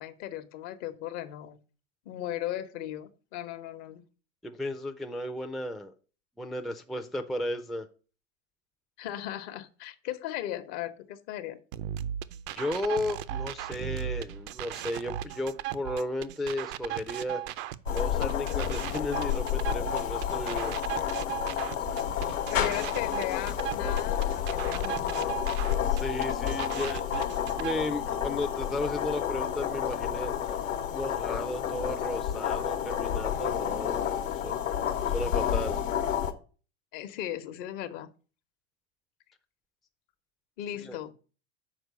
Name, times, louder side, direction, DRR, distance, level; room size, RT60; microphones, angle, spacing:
voice 1, 0.0-1.6 2.1-4.0 9.0-11.6 22.5-25.3 36.9-38.1 40.6-41.1, left 12 dB, 55° left, 1.0 m, -37 dB
voice 2, 4.4-5.9 6.4-7.9 12.5-17.4 17.9-20.7 25.9-27.3 27.6-30.6 30.9-34.1 34.4-34.8 35.1-35.8 40.8-41.0, left 1 dB, ahead, 0.5 m, -34 dB
sound 1, 11.7-27.7, right 12 dB, 55° right, 0.6 m, -37 dB
sound 2, 17.9-36.3, left 9 dB, 80° left, 1.1 m, -30 dB
6.1 x 4.5 x 6.5 m
hypercardioid pair, 95°, 38 cm